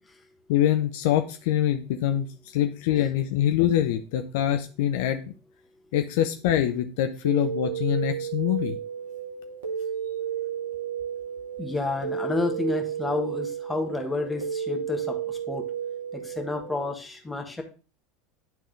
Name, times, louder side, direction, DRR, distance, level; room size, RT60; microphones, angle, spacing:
voice 1, 0.5-5.2 5.9-8.8, left 11 dB, 55° left, 7 dB, 0.5 m, -24 dB
sound 1, 7.2-16.8, right 8 dB, 65° right, 1.2 m, -32 dB
voice 2, 11.6-15.7 16.1-17.6, left 3 dB, 10° left, 3 dB, 1.3 m, -30 dB
10.5 x 3.6 x 3.2 m, 0.35 s
figure-of-eight pair, 80°, 0 cm